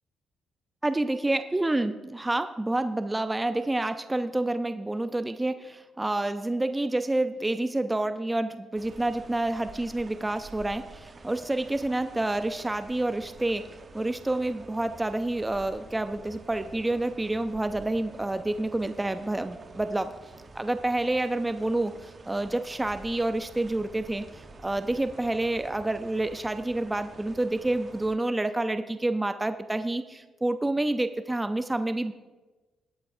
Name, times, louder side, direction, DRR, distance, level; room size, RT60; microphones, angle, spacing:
voice 1, 0.8-20.2 20.6-24.2 24.6-32.1, right 2 dB, 15° right, 10 dB, 0.5 m, -28 dB
sound 1, 8.7-28.2, right 3 dB, 35° right, 0.9 m, -49 dB
19.0 x 8.3 x 2.6 m, 1.2 s
cardioid pair, 90°, 0 cm